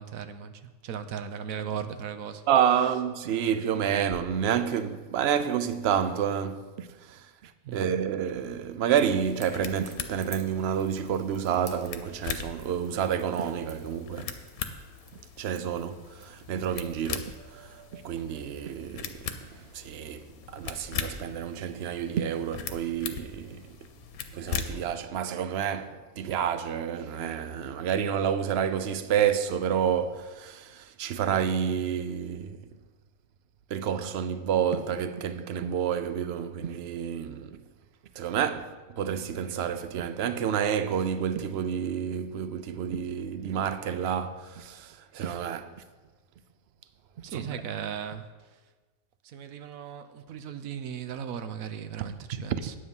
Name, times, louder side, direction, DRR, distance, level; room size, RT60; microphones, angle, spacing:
voice 1, 0.0-2.5 7.6-7.9 47.2-48.6 49.2-52.8, right 8 dB, 75° right, 1.1 m, -37 dB
voice 2, 2.5-14.4 15.1-23.7 24.3-32.7 33.7-37.6 38.1-45.8 47.3-47.5 52.5-52.6, right 8 dB, 60° right, 0.8 m, -29 dB
sound 1, 9.1-24.9, left 7 dB, 85° left, 1.2 m, -40 dB
Crackle / Crack, 9.3-17.5, right 2 dB, 20° right, 0.8 m, -53 dB
9.5 x 8.6 x 5.4 m
omnidirectional pair, 1.5 m